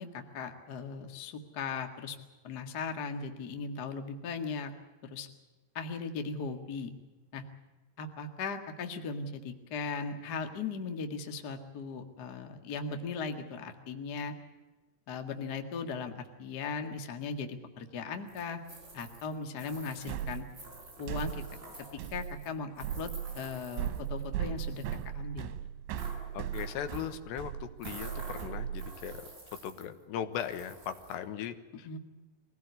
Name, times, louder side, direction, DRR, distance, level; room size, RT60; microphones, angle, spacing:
voice 1, 0.0-2.2 2.4-4.7 5.0-5.3 5.7-6.9 7.3-7.4 8.0-14.3 15.1-18.6 18.9-20.5 21.0-21.4 22.1-23.1 23.3-25.5 31.8-32.0, left 4 dB, 60° left, 5 dB, 1.0 m, -38 dB
sound 1, 18.3-24.3 24.6-25.0 25.9-27.2 27.8-30.0 30.3-31.1, right 1 dB, 25° right, 6.1 m, -50 dB
sound 2, 20.1-29.2, right 10 dB, 85° right, 3.4 m, -38 dB
voice 2, 26.3-29.3 29.6-32.0, left 9 dB, 80° left, 9 dB, 3.4 m, -38 dB
23.5 x 17.0 x 8.2 m, 1.2 s
omnidirectional pair, 5.1 m